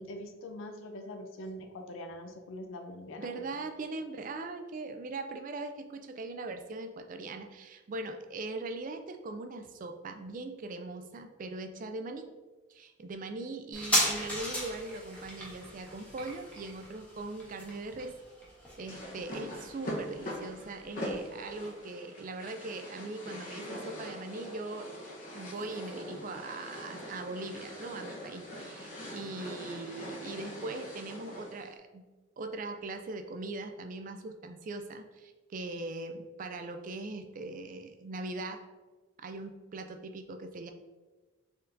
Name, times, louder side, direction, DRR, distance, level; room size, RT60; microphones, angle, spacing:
voice 1, 0.0-3.3 3.5-3.7, left 1 dB, 75° left, 4 dB, 0.5 m, -43 dB
voice 2, 3.2-12.3 12.7-18.1 18.8-24.9 25.3-32.0 32.4-38.6 39.2-40.7, right 2 dB, 40° right, 6 dB, 0.4 m, -40 dB
sound 1, 13.7-20.8 21.1-21.2, left 1 dB, 5° left, 1.0 m, -35 dB
sound 2, 18.9-31.7, equal, 40° left, 0.9 m, -42 dB
4.5 x 3.6 x 2.5 m, 1.2 s
head